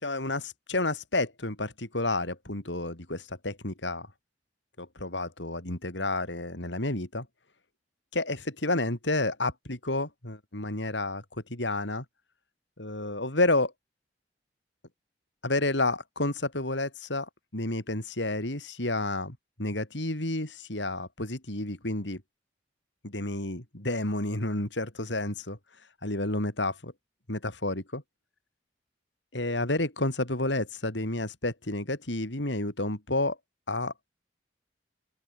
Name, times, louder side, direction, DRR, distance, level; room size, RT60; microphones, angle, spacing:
voice 1, 0.0-4.1 4.8-7.3 8.1-12.0 12.8-13.7 15.4-22.2 23.0-25.6 26.0-26.9 27.3-28.0 29.3-33.4 33.7-34.1, left 2 dB, 80° left, 5.0 m, -30 dB
open air
head